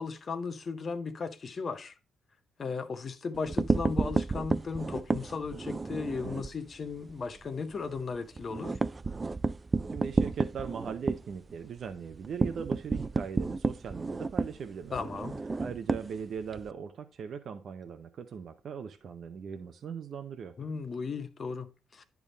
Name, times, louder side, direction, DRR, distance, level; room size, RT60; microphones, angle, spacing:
voice 1, 0.0-1.9 2.6-8.8 14.9-15.4 20.6-22.0, left 5 dB, 40° left, 0.9 m, -36 dB
sound 1, 3.3-6.6 6.9-7.1 7.4-7.5 7.8-16.7, right 3 dB, 25° right, 0.3 m, -31 dB
voice 2, 9.9-15.2 15.6-20.6, right 7 dB, 60° right, 0.6 m, -40 dB
10.5 x 3.5 x 4.0 m
cardioid pair, 90°, 0 cm